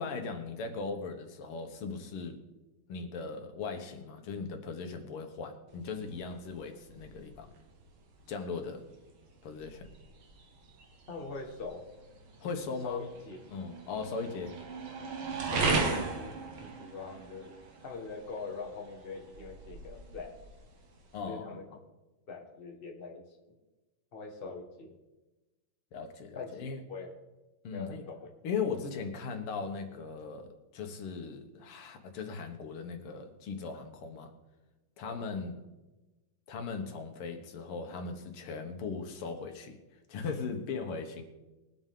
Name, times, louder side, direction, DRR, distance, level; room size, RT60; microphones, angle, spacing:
voice 1, 0.0-2.4 2.9-7.5 8.3-8.9 9.4-9.9 12.4-13.0 13.5-14.6 21.1-21.8 25.9-26.8 27.6-28.0 28.4-34.3 35.0-35.6 36.5-39.8 40.1-41.2, left 4 dB, 85° left, 5 dB, 2.1 m, -38 dB
sound 1, 5.7-21.2, right 4 dB, 70° right, 2.2 m, -38 dB
voice 2, 11.1-11.8 12.8-13.4 15.5-17.5 17.8-20.4 21.3-21.6 22.3-23.2 24.1-24.9 26.3-26.6 26.9-27.2 27.7-28.3 35.0-35.3, left 4 dB, 30° left, 1 dB, 1.6 m, -42 dB
21.0 x 7.9 x 3.7 m, 1.1 s
omnidirectional pair, 2.4 m